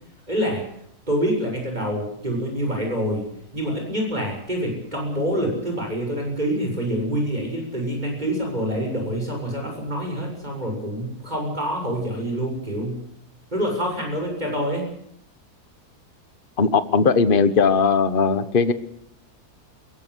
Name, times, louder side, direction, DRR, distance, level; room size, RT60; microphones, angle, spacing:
voice 1, 0.3-0.6 1.1-3.2 3.5-13.0 13.5-14.9, equal, 25° right, 1 dB, 7.1 m, -26 dB
voice 2, 16.6-18.7, left 5 dB, 35° left, 12 dB, 1.3 m, -18 dB
22.0 x 17.0 x 8.1 m, 0.72 s
omnidirectional pair, 1.7 m